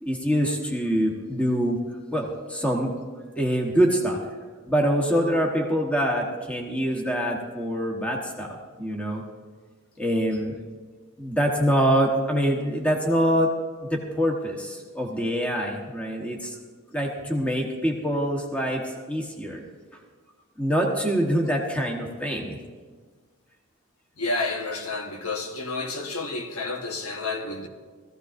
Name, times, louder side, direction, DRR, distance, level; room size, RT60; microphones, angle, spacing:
voice 1, 0.0-1.8 2.1-2.9 3.4-4.2 4.7-9.2 10.0-10.6 11.2-13.5 13.8-16.5 16.9-19.6 20.6-22.6, equal, 5° left, 1.2 m, -25 dB
voice 2, 24.2-27.7, left 3 dB, 85° left, 1.3 m, -30 dB
18.0 x 15.0 x 2.6 m
head